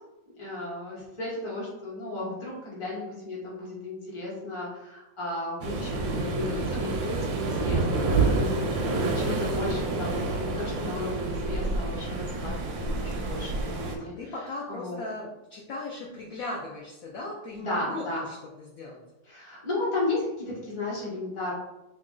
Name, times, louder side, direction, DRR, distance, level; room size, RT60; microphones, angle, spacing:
voice 1, 0.4-15.0 17.6-18.3 19.2-21.5, left 2 dB, 20° left, -6 dB, 0.9 m, -34 dB
Waves surf, 5.6-14.0, right 3 dB, 70° right, 0.9 m, -28 dB
voice 2, 13.0-13.3 14.0-19.0, left 2 dB, 70° left, -2 dB, 0.8 m, -38 dB
3.1 x 2.5 x 3.7 m, 0.95 s
omnidirectional pair, 2.0 m